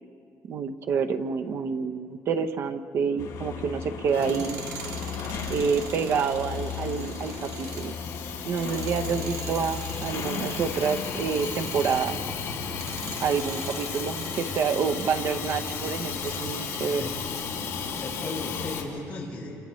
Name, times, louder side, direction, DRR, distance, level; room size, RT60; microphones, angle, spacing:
voice 1, 0.5-4.6 5.5-7.9 8.4-12.2 13.2-17.0, right 6 dB, 45° right, 8 dB, 0.8 m, -28 dB
sound 1, 3.2-13.2, left 6 dB, 80° left, 3.7 m, -36 dB
Hiss / Toilet flush / Trickle dribble, 4.1-18.8, left 6 dB, 55° left, 3.2 m, -35 dB
Tools, 4.1-12.3 12.7-16.9, right 6 dB, 75° right, 2.4 m, -43 dB
voice 2, 13.5-13.9 17.0-17.1 17.9-19.6, left 2 dB, 20° left, -8 dB, 6.7 m, -37 dB
29.5 x 28.0 x 3.2 m, 2.6 s
cardioid pair, 165°, 6 cm